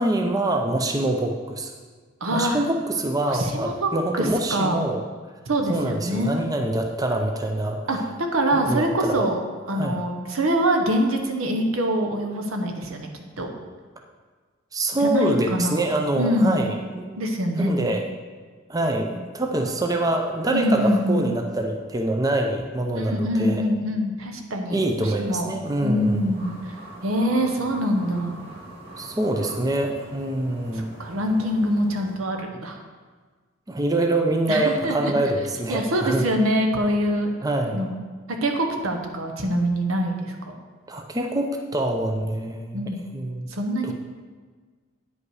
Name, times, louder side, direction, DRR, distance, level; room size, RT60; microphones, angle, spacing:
voice 1, 0.0-1.7 2.3-5.0 5.7-7.8 8.5-9.2 9.7-10.0 14.7-17.2 17.6-18.0 18.7-23.6 24.7-26.3 29.0-30.9 33.7-36.2 37.4-37.8 40.9-42.8 43.1-43.5 43.8-43.9, right 1 dB, 15° right, 3 dB, 0.5 m, -25 dB
voice 2, 2.2-2.6 3.3-4.9 5.5-6.4 7.9-8.0 8.3-9.4 9.7-13.1 13.4-13.5 15.0-15.8 16.2-16.6 17.2-17.8 20.5-21.2 22.9-25.5 25.8-26.7 27.0-28.4 31.0-32.8 34.5-35.1 35.7-37.3 37.7-38.0 38.4-40.6 42.7-43.0 43.5-43.9, equal, 85° right, 3 dB, 1.1 m, -24 dB
sound 1, 25.9-32.2, right 1 dB, 50° right, 2.3 m, -43 dB
9.5 x 5.4 x 4.8 m, 1.5 s
head